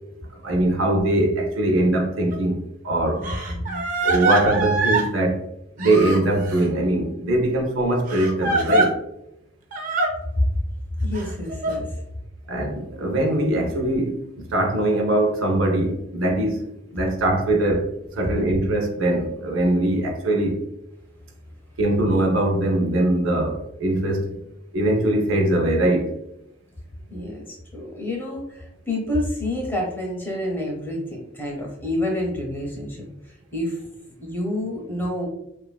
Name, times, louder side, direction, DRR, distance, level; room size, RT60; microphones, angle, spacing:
voice 1, 0.4-3.2 4.0-5.4 5.8-8.9 12.5-14.2 14.5-16.6 16.9-20.6 21.8-24.4 24.7-26.1, right 1 dB, 85° right, 2 dB, 0.6 m, -21 dB
Crying sobbing, 2.3-2.4 3.2-5.1 5.8-6.7 8.1-8.9 9.7-10.1 11.1-11.7, right 2 dB, 40° right, 0.4 m, -23 dB
voice 2, 3.1-3.8 10.4-10.5 11.0-12.0 27.1-35.3, left 1 dB, 10° left, -2 dB, 0.6 m, -28 dB
2.9 x 2.3 x 2.2 m, 0.84 s
head